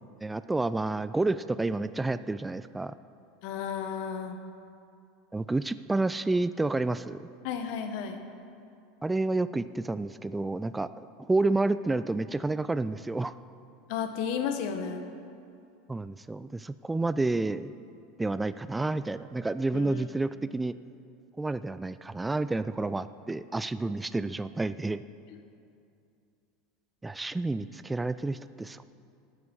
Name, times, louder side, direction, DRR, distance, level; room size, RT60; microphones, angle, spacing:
voice 1, 0.2-2.9 5.3-7.2 9.0-13.3 15.9-17.7 18.2-20.7 21.4-25.0 27.0-28.8, right 2 dB, 10° right, 14 dB, 0.4 m, -30 dB
voice 2, 3.4-4.4 7.4-8.2 13.9-15.0 19.7-20.0, left 7 dB, 60° left, 7 dB, 1.3 m, -33 dB
13.0 x 9.5 x 6.2 m, 2.5 s
hypercardioid pair, 85°, 0 cm